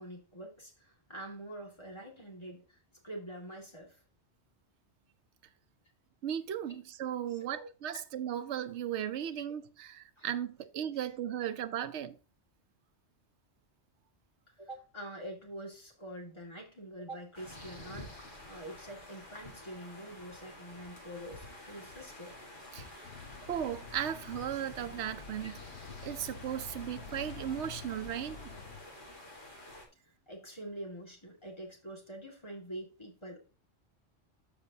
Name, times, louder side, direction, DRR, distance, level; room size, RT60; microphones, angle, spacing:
voice 1, 0.0-2.8 3.0-4.0 6.7-6.8 7.3-7.7 10.2-10.3 10.9-11.1 14.6-22.4 23.1-23.2 25.4-25.5 30.0-33.4, right 1 dB, 25° left, 2.1 m, -46 dB
voice 2, 6.2-12.2 22.7-22.9 23.5-25.5 26.0-28.5, right 10 dB, 85° right, 0.9 m, -36 dB
sound 1, 17.3-29.9, left 1 dB, 45° left, 1.9 m, -50 dB
sound 2, 23.0-28.8, left 6 dB, 75° left, 1.2 m, -48 dB
13.5 x 5.0 x 2.7 m
omnidirectional pair, 1.1 m